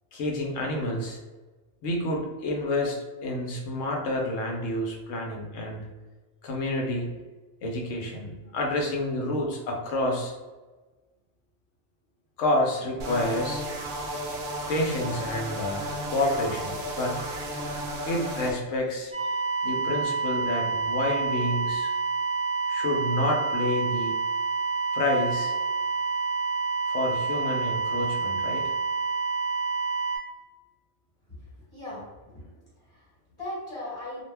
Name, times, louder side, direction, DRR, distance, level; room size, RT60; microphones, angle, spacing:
voice 1, 0.1-1.2 1.8-5.8 6.4-7.1 7.6-10.3 12.4-13.6 14.7-17.2 18.1-19.2 19.6-21.9 22.7-24.1 24.9-25.5 26.9-28.7, left 1 dB, 80° left, 0 dB, 1.0 m, -29 dB
sound 1, 13.0-18.5, right 1 dB, 65° right, 0.7 m, -33 dB
sound 2, 19.1-30.2, right 4 dB, 5° left, 0.8 m, -28 dB
voice 2, 31.7-32.4 32.8-34.2, left 1 dB, 25° left, -9 dB, 1.2 m, -38 dB
2.4 x 2.1 x 3.2 m, 1.2 s
omnidirectional pair, 1.3 m